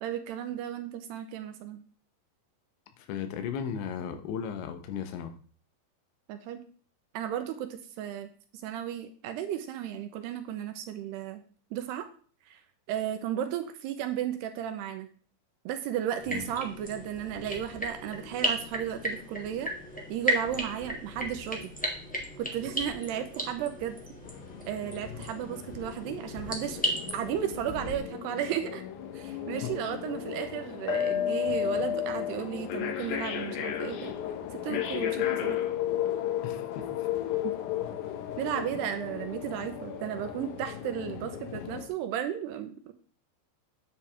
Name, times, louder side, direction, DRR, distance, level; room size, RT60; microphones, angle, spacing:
voice 1, 0.0-1.8 6.3-6.6 7.1-8.3 8.6-11.4 11.7-12.1 12.5-12.6 12.9-15.1 15.7-19.7 20.1-21.6 22.4-24.0 24.7-28.8 29.1-34.2 34.5-35.6 37.4-37.5 38.4-42.9, right 10 dB, 75° right, 7 dB, 2.8 m, -34 dB
voice 2, 3.0-5.3 16.3-16.4 29.6-29.7 36.4-37.1, left 7 dB, 85° left, 8 dB, 3.4 m, -36 dB
sound 1, 16.2-28.0, equal, 10° left, 0.5 m, -35 dB
sound 2, 24.2-41.9, left 10 dB, 70° left, 2.5 m, -34 dB
9.8 x 8.7 x 3.5 m, 0.43 s
omnidirectional pair, 5.0 m